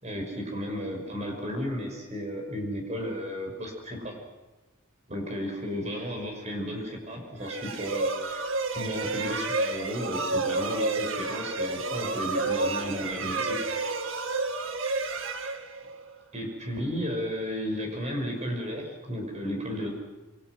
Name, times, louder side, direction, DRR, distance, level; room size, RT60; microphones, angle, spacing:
voice 1, 0.0-4.2 5.1-8.4 8.7-13.6 16.3-19.9, equal, 35° right, 2 dB, 6.0 m, -33 dB
sound 1, 7.4-16.2, right 3 dB, 70° right, 1.8 m, -30 dB
28.0 x 23.5 x 6.2 m, 1.1 s
head